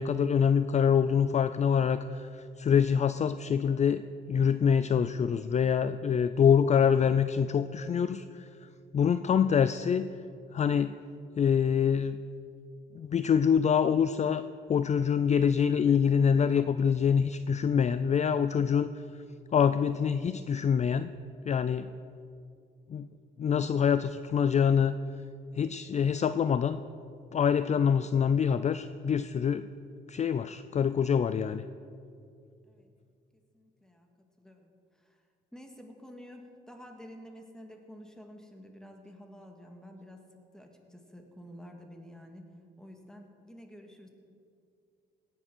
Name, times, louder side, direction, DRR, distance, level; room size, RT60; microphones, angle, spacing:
voice 1, 0.0-8.7 8.9-10.1 10.5-10.9 11.4-12.2 12.9-14.4 14.7-19.0 19.5-21.1 21.4-21.9 22.9-23.1 23.4-25.0 25.5-26.8 27.3-29.7 30.1-31.6, left 7 dB, 35° left, 13 dB, 0.4 m, -25 dB
voice 2, 33.3-34.1 34.4-35.2 35.5-40.2 40.5-44.1, equal, 5° left, 3 dB, 2.1 m, -50 dB
17.0 x 8.7 x 6.2 m, 2.5 s
cardioid pair, 90°, 20 cm